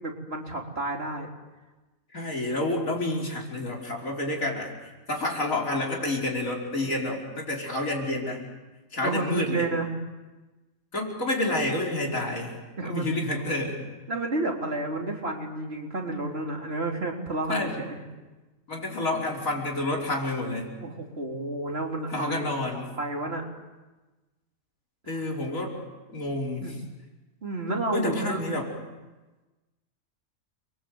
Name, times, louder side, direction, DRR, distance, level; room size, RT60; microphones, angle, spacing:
voice 1, 0.0-1.3 6.8-6.9 9.0-10.0 12.8-13.4 14.1-18.0 20.8-22.5 23.0-23.5 25.0-25.3 26.6-26.8 27.4-28.4, right 2 dB, 50° right, 1 dB, 3.9 m, -31 dB
voice 2, 2.1-4.7 5.1-8.4 8.9-9.7 10.9-12.6 12.8-13.9 17.5-17.8 18.7-20.7 22.1-22.9 25.1-25.8 26.1-26.8 27.9-28.6, left 2 dB, 90° left, -1 dB, 5.3 m, -29 dB
29.5 x 23.0 x 8.0 m, 1.2 s
omnidirectional pair, 1.4 m